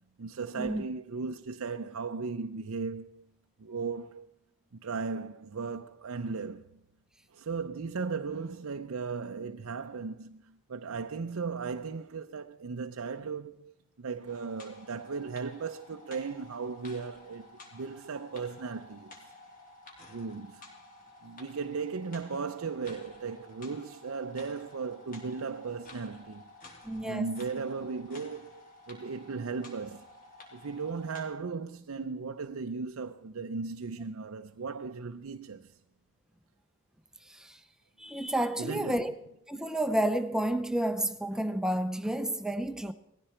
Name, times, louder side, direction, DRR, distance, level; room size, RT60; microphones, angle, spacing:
voice 1, 0.2-3.2 3.6-4.3 4.7-6.8 7.3-19.3 20.1-20.6 21.2-26.4 27.0-30.1 30.5-35.8 38.6-39.0, right 4 dB, 85° right, 0.6 m, -37 dB
sound 1, 14.3-31.3, left 2 dB, 40° left, 3.2 m, -52 dB
voice 2, 26.8-27.3 37.2-37.6 38.0-39.1 39.5-42.9, right 1 dB, 5° right, 0.6 m, -30 dB
19.0 x 15.0 x 4.4 m
head